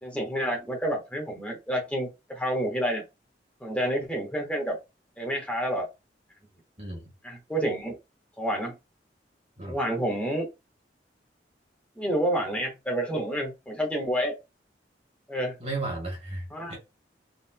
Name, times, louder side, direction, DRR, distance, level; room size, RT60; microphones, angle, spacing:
voice 1, 0.0-3.0 3.6-4.8 5.2-5.9 7.2-8.0 8.4-8.8 9.7-10.5 12.0-14.3 15.3-15.5 16.5-16.7, right 1 dB, 5° left, 1.4 m, -29 dB
voice 2, 6.8-7.1 9.6-9.8 15.6-16.8, right 2 dB, 35° right, 2.0 m, -34 dB
4.0 x 3.7 x 2.3 m
head